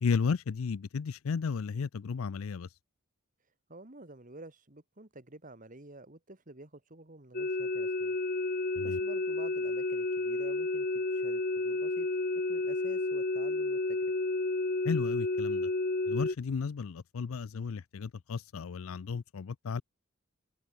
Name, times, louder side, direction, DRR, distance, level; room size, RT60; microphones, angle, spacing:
voice 1, 0.0-2.7 8.8-9.0 14.8-15.7 16.1-19.8, left 5 dB, 85° left, 0.5 m, -33 dB
voice 2, 3.7-8.2 8.8-12.1 12.5-14.0, right 2 dB, 40° right, 2.1 m, -50 dB
sound 1, 7.3-16.3, left 2 dB, 45° left, 1.1 m, -31 dB
head